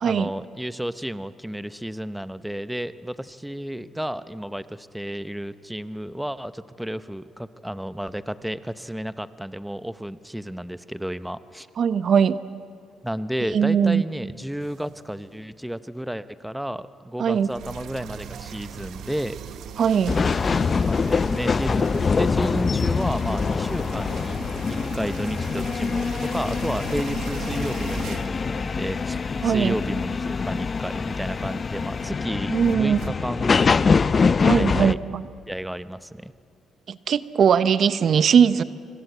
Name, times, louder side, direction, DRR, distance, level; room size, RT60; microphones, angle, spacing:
voice 1, 0.0-11.7 13.0-19.4 20.6-24.4 24.7-29.2 29.4-34.0 34.5-35.0 35.5-36.3, equal, 5° right, 13 dB, 0.8 m, -32 dB
voice 2, 11.8-12.4 13.5-14.0 17.2-17.5 19.8-20.1 29.4-29.7 32.5-33.0 34.4-35.2 36.9-38.6, right 7 dB, 60° right, 14 dB, 0.8 m, -20 dB
sound 1, 14.6-15.2 17.4-33.1, right 8 dB, 75° right, 1.2 m, -40 dB
sound 2, 20.1-35.0, left 5 dB, 40° left, 0.6 m, -24 dB
25.5 x 25.5 x 8.0 m, 2.5 s
cardioid pair, 90°, 0 cm